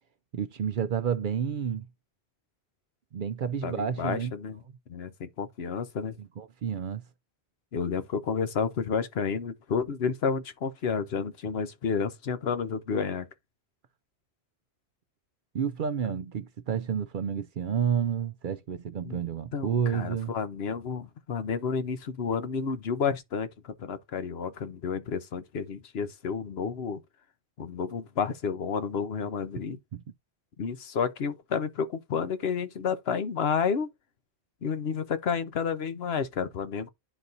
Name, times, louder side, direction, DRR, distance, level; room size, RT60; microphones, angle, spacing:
voice 1, 0.3-1.9 3.1-4.3 4.7-4.8 6.2-7.0 15.5-20.3 29.9-30.0, right 8 dB, 60° right, 0.6 m, -30 dB
voice 2, 3.6-4.6 4.9-6.2 7.7-13.3 19.0-19.2 19.5-27.0 27.6-29.8 30.6-33.9 34.6-36.9, left 6 dB, 70° left, 1.0 m, -30 dB
11.0 x 4.1 x 2.6 m
omnidirectional pair, 1.1 m